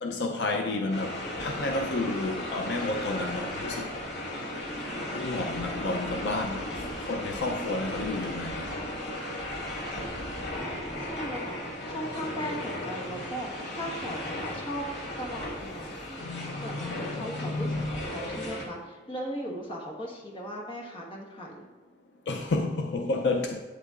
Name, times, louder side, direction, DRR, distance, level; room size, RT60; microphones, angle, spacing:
voice 1, 0.0-4.0 5.1-6.6 7.1-8.6 16.2-18.0 22.3-23.6, left 2 dB, 70° left, 0.5 m, -31 dB
sound 1, 0.9-18.6, left 1 dB, 90° left, 2.1 m, -36 dB
voice 2, 10.4-11.6 11.9-14.8 15.2-16.3 16.6-21.6, equal, 30° left, 1.4 m, -38 dB
8.4 x 8.1 x 2.5 m
head